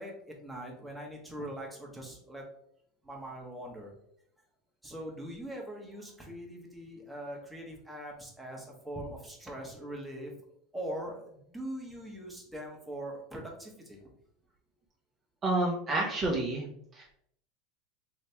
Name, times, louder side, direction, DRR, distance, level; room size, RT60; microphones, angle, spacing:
voice 1, 0.0-2.4 3.0-3.9 4.8-10.3 10.7-14.1, right 1 dB, 5° right, -2 dB, 1.1 m, -42 dB
voice 2, 15.4-16.6 16.9-17.1, right 2 dB, 30° right, -2 dB, 0.7 m, -29 dB
3.2 x 2.8 x 3.3 m, 0.69 s
supercardioid pair, 115°, 0 cm